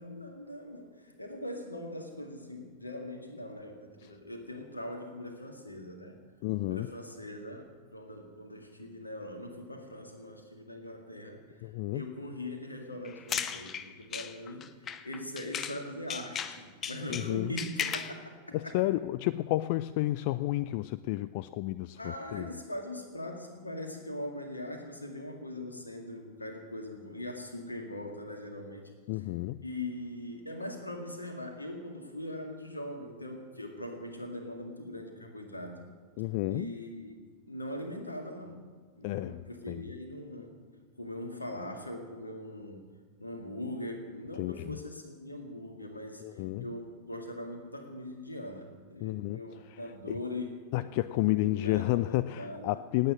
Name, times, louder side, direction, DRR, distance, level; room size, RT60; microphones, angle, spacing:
voice 1, 0.0-6.2 6.6-11.4 11.9-14.7 15.0-18.7 22.0-28.8 29.6-35.9 36.5-37.2 37.5-38.6 39.0-40.5 41.0-42.9 43.2-46.2 46.6-50.9 51.2-52.8, left 1 dB, 80° left, 4 dB, 2.1 m, -41 dB
voice 2, 6.4-6.9 11.6-12.0 17.1-17.6 18.5-22.5 29.1-29.6 36.2-36.7 39.0-39.9 44.4-44.8 46.2-46.7 49.0-49.4 49.7-49.8 50.7-53.1, left 17 dB, 45° left, 15 dB, 0.3 m, -31 dB
sound 1, 13.0-15.8 16.1-18.2, left 8 dB, 25° left, 0.8 m, -36 dB
18.5 x 8.9 x 7.5 m, 1.5 s
figure-of-eight pair, 90°, 0 cm